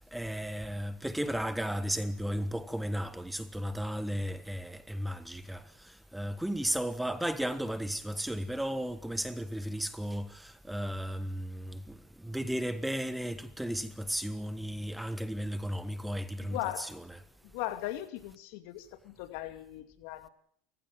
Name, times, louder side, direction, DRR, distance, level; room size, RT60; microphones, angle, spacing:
voice 1, 0.1-16.9, equal, 5° right, 1.5 m, -34 dB
voice 2, 16.5-17.0 17.4-20.3, left 14 dB, 70° left, 2.4 m, -38 dB
28.5 x 16.0 x 9.1 m
supercardioid pair, 115°, 0 cm